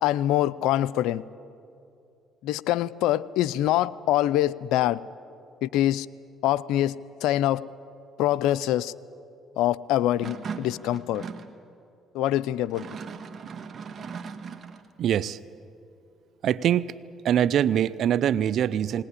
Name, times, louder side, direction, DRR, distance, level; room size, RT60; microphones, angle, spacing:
voice 1, 0.0-1.2 2.4-5.0 5.6-6.1 6.4-7.0 7.2-7.6 8.2-8.9 9.6-11.2 12.1-12.9, left 13 dB, 80° left, 17 dB, 0.5 m, -24 dB
sound 1, 10.2-11.5 12.6-14.9, right 5 dB, 50° right, 1.6 m, -38 dB
voice 2, 15.0-15.4 16.4-16.9 17.2-19.0, right 10 dB, 65° right, 17 dB, 0.6 m, -23 dB
19.5 x 19.5 x 9.9 m, 2.6 s
supercardioid pair, 70°, 0 cm